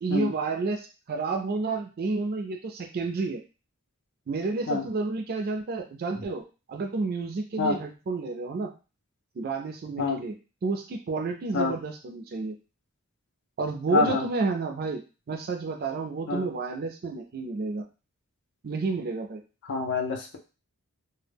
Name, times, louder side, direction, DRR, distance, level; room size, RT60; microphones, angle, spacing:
voice 1, 0.0-3.4 4.3-8.7 9.4-10.3 10.6-12.5 13.6-15.0 15.3-17.8 18.6-19.4, right 3 dB, 45° right, 3 dB, 0.4 m, -30 dB
voice 2, 13.9-14.2 16.3-16.5 19.7-20.4, left 4 dB, 55° left, 2 dB, 0.5 m, -26 dB
2.1 x 2.1 x 3.3 m, 0.32 s
head